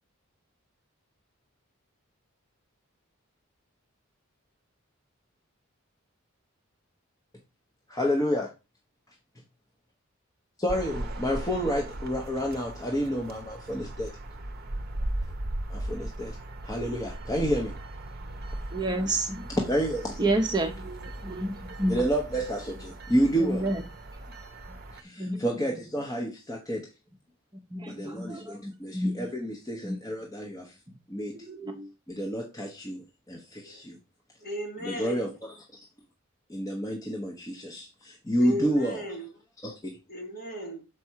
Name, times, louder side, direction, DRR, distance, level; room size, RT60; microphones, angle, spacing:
voice 1, 7.9-8.5 10.6-14.1 15.7-16.4 16.6-17.7 19.7-20.2 21.9-23.7 24.9-26.9 27.9-30.7 31.1-31.3 32.1-34.0 34.8-35.6 36.5-39.0 39.6-39.7, equal, 15° left, 1.0 m, -29 dB
sound 1, 10.7-25.0, right 1 dB, 45° right, 0.8 m, -38 dB
voice 2, 18.7-19.5 20.2-22.0 23.4-23.8 25.2-25.8 27.5-29.3 29.8-30.0 30.9-31.0 31.3-31.9, right 1 dB, 20° right, 0.8 m, -30 dB
voice 3, 34.4-35.3 38.4-39.3 40.1-40.8, equal, 45° left, 2.4 m, -35 dB
6.9 x 4.8 x 4.5 m
head